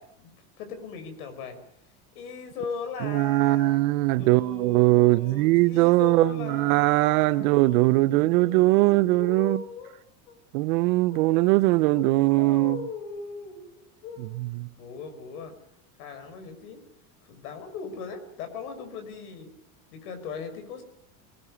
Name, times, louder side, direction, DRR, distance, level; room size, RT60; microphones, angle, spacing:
voice 1, 0.0-1.6 2.2-3.8 4.1-10.0 10.3-10.4 11.1-11.6 11.9-14.4 14.8-15.5 16.0-16.8 17.2-19.5 19.9-20.8, left 5 dB, 85° left, 5.5 m, -39 dB
voice 2, 3.0-9.6 10.5-12.8 14.6-14.7, right 20 dB, 70° right, 1.0 m, -21 dB
20.0 x 20.0 x 9.8 m
supercardioid pair, 135°, 44 cm